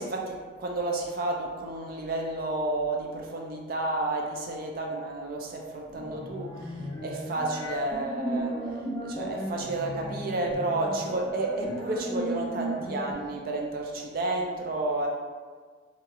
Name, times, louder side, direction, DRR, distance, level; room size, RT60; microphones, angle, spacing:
voice 1, 0.0-8.6 9.0-15.1, right 2 dB, 50° right, 1 dB, 0.3 m, -31 dB
sound 1, 6.0-13.1, right 1 dB, 20° left, 0.4 m, -35 dB
2.8 x 2.3 x 2.8 m, 1.5 s
head